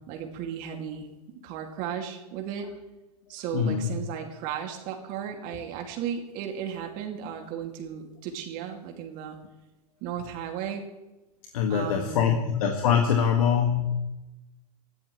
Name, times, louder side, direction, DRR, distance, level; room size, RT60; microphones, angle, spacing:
voice 1, 0.1-1.1 1.4-2.7 3.3-9.4 10.0-10.8 11.7-12.4, right 8 dB, 40° right, 3 dB, 2.4 m, -35 dB
voice 2, 3.5-3.9 11.5-13.9, left 7 dB, 65° left, 3 dB, 2.0 m, -23 dB
21.0 x 15.0 x 3.2 m, 1.0 s
hypercardioid pair, 115°, 20 cm